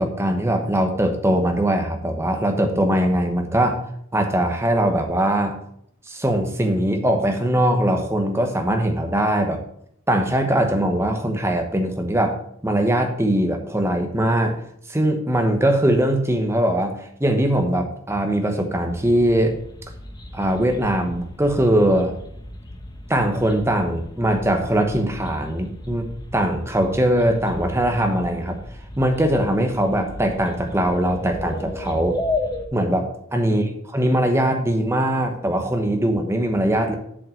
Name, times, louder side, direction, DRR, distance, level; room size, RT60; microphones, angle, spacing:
voice 1, 0.0-3.8 4.1-5.6 6.1-9.6 10.1-12.4 12.6-14.5 14.9-19.6 20.3-22.1 23.1-26.1 26.3-28.6 29.0-32.2 32.7-37.0, right 1 dB, 10° right, 4 dB, 1.0 m, -21 dB
sound 1, 18.9-32.7, left 1 dB, 20° left, 0.9 m, -34 dB
7.4 x 5.5 x 6.5 m, 0.71 s
head